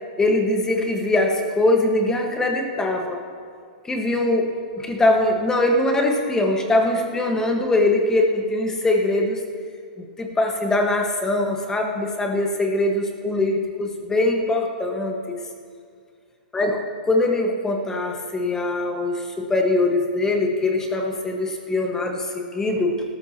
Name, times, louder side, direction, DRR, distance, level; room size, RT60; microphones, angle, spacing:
voice 1, 0.2-3.2 3.8-9.4 10.2-15.4 16.5-23.0, left 2 dB, 10° left, 2 dB, 1.5 m, -22 dB
19.0 x 13.5 x 3.0 m, 2.1 s
hypercardioid pair, 125°, 5 cm